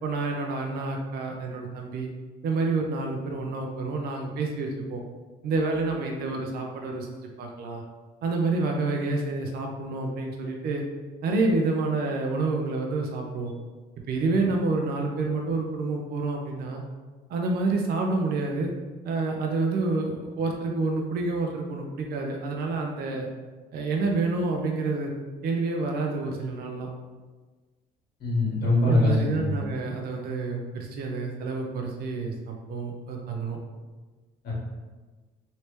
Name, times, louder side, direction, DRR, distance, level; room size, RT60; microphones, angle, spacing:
voice 1, 0.0-2.1 2.4-5.0 5.4-7.1 7.4-7.8 8.2-10.8 11.2-13.5 14.1-16.8 17.3-18.7 19.0-23.3 23.7-25.1 25.4-26.9 28.8-33.6, right 3 dB, 65° right, 1 dB, 0.6 m, -28 dB
voice 2, 28.2-29.5 34.4-34.5, left 2 dB, 65° left, -6 dB, 1.4 m, -23 dB
3.3 x 2.8 x 3.1 m, 1.3 s
cardioid pair, 110°, 17 cm